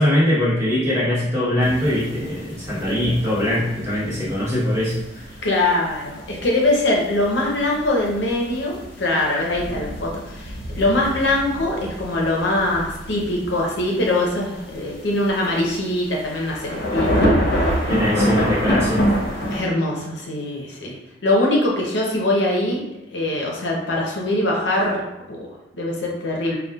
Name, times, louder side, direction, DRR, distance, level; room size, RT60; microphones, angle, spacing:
voice 1, 0.0-5.2 17.9-19.0, left 1 dB, 15° right, -7 dB, 1.1 m, -21 dB
sound 1, 1.6-19.6, equal, 60° left, 0.9 m, -27 dB
voice 2, 5.4-17.3 17.5-17.9 19.5-22.8 23.1-25.0 25.3-26.6, left 1 dB, 90° left, -2 dB, 0.8 m, -22 dB
4.0 x 2.3 x 2.3 m, 0.90 s
head